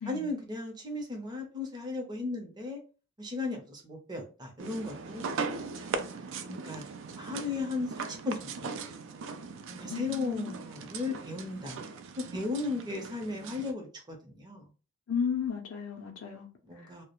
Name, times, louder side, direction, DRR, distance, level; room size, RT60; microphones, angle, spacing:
voice 1, 0.1-2.8 3.2-5.4 5.8-6.0 6.5-6.8 7.2-8.9 9.7-14.7 16.6-17.0, left 3 dB, 20° right, 0.6 m, -36 dB
sound 1, 4.6-13.7, right 5 dB, 60° right, 0.3 m, -39 dB
voice 2, 9.9-10.5 15.1-16.5 16.8-16.9, left 7 dB, 70° left, 0.5 m, -34 dB
2.3 x 2.0 x 2.9 m
head